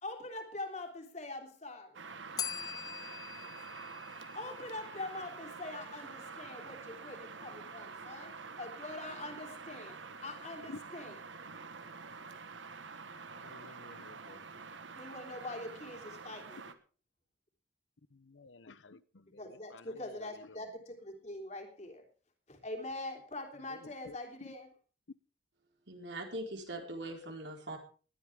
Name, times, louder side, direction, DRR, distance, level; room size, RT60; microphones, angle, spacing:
voice 1, 0.0-2.0 4.3-11.1 15.0-16.7 19.4-22.0 22.5-24.7, left 2 dB, 40° left, 3 dB, 3.4 m, -44 dB
sound 1, 1.9-16.7, right 4 dB, 85° right, 1.4 m, -47 dB
Bell, 2.4-5.2, left 7 dB, 20° left, 0.8 m, -43 dB
voice 2, 13.3-14.6 18.1-20.7 23.7-24.2 27.1-27.2, left 3 dB, 85° left, 16 dB, 0.8 m, -53 dB
voice 3, 25.9-27.8, right 1 dB, 70° right, 2 dB, 4.3 m, -41 dB
20.0 x 12.0 x 3.6 m, 0.37 s
head